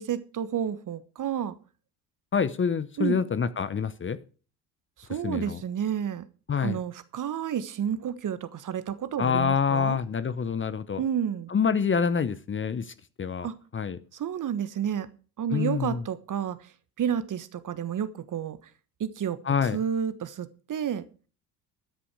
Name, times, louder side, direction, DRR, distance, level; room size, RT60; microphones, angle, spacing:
voice 1, 0.0-1.6 3.0-3.2 5.0-6.2 6.6-10.0 11.0-11.5 13.4-13.5 14.1-15.1 15.4-16.7 17.0-18.6 19.0-19.4 19.7-21.1, right 9 dB, 40° right, 1.3 m, -30 dB
voice 2, 2.3-4.2 5.2-5.6 6.5-6.8 9.2-11.0 11.5-14.0 15.5-16.0 19.4-19.8, left 6 dB, 25° left, 0.9 m, -27 dB
13.5 x 10.0 x 4.9 m
hypercardioid pair, 60°, 49 cm